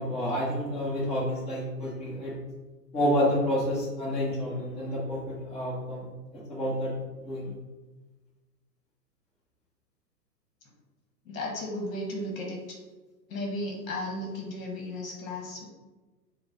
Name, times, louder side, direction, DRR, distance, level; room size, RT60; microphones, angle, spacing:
voice 1, 0.0-2.3 2.9-6.0 6.5-6.9 7.2-7.5, equal, 15° left, -7 dB, 1.0 m, -29 dB
voice 2, 11.2-12.8 13.3-15.7, left 1 dB, 55° left, -1 dB, 1.2 m, -35 dB
4.9 x 2.2 x 4.0 m, 1.2 s
figure-of-eight pair, 115°, 49 cm